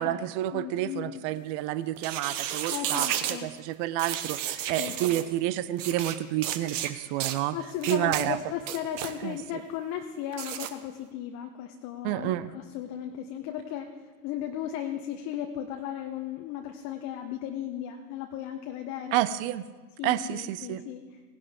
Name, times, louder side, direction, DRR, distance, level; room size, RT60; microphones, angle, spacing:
voice 1, 0.0-7.6 7.9-8.4 9.2-9.4 12.0-12.5 19.1-19.7 20.0-20.8, right 14 dB, 40° right, 16 dB, 0.6 m, -29 dB
voice 2, 0.5-1.1 2.7-3.5 4.8-5.2 7.5-19.2 20.0-21.0, left 10 dB, 35° left, 4 dB, 1.0 m, -36 dB
sound 1, 2.0-3.4 4.0-5.2 5.8-6.2 6.4-6.9 7.2-7.4 7.8-8.3 8.6-9.1 10.3-10.7, right 11 dB, 55° right, 1.1 m, -32 dB
18.0 x 11.0 x 3.6 m, 1.4 s
figure-of-eight pair, 90°, 45 cm